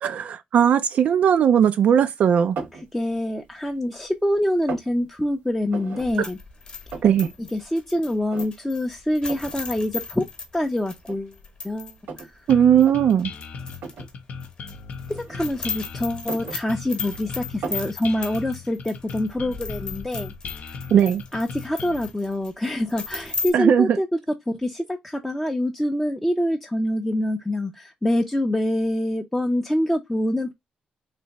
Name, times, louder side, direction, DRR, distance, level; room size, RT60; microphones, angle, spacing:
voice 1, 0.0-2.6 6.2-6.3 7.0-7.3 12.5-13.3 20.9-21.2 23.5-24.0, right 8 dB, 60° right, 0.4 m, -18 dB
sound 1, 2.6-2.9 3.4-4.1 4.3-4.9 5.7-6.1 6.4-6.5 6.7-7.3 7.7-7.8 8.3-8.8 9.3-9.6 10.4-10.5 11.0-12.3 12.7-13.0 13.8-14.1 15.1-15.7 16.1-17.1 17.6-17.9, right 4 dB, 80° right, 1.5 m, -36 dB
voice 2, 2.9-6.4 7.5-10.3 10.5-11.4 11.6-12.4 15.1-20.8 21.3-24.1 24.5-30.5, left 1 dB, 5° left, 0.5 m, -25 dB
sound 2, 6.0-11.9 12.2-12.3 12.8-14.1 14.4-23.5, left 4 dB, 35° left, 1.0 m, -36 dB
sound 3, 12.5-22.1, left 5 dB, 60° left, 0.6 m, -37 dB
3.3 x 2.8 x 4.0 m
wide cardioid pair, 155°, 3 cm